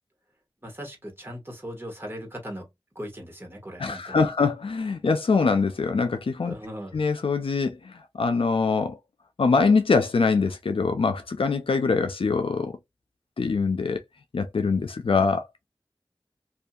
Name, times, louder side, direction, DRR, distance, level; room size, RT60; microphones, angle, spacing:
voice 1, 0.6-2.7 2.9-4.3 6.4-7.0, equal, 25° right, 1.4 m, -38 dB
voice 2, 3.8-6.5 6.9-9.0 9.4-12.7 13.4-14.0 14.3-15.5, left 4 dB, 85° left, 0.4 m, -23 dB
2.7 x 2.4 x 2.2 m
wide cardioid pair, 55°, 9 cm